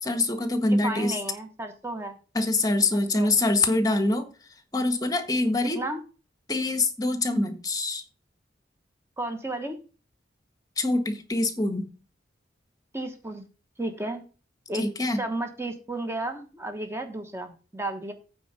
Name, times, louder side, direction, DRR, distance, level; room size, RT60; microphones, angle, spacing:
voice 1, 0.0-1.1 2.3-4.2 4.7-5.8 6.5-8.0 10.8-11.9 14.7-15.2, left 2 dB, 20° left, 8 dB, 1.5 m, -24 dB
voice 2, 0.7-2.1 2.9-3.3 5.6-6.0 9.2-9.8 12.9-13.5 13.8-14.2 14.7-14.9 15.1-18.1, right 2 dB, 15° right, 6 dB, 1.1 m, -33 dB
9.0 x 4.6 x 6.8 m, 0.35 s
head